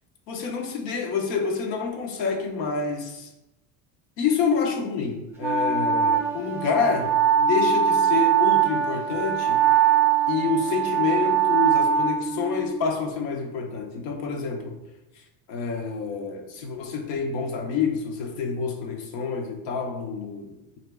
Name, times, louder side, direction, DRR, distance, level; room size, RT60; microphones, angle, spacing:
voice 1, 0.3-3.3 4.2-9.6 10.3-14.8 15.5-20.8, left 5 dB, 90° left, 2 dB, 0.8 m, -28 dB
Wind instrument woodwind instrument, 5.4-12.9, right 8 dB, 5° right, 0.4 m, -22 dB
2.9 x 2.7 x 3.3 m, 0.96 s
cardioid pair, 125°, 41 cm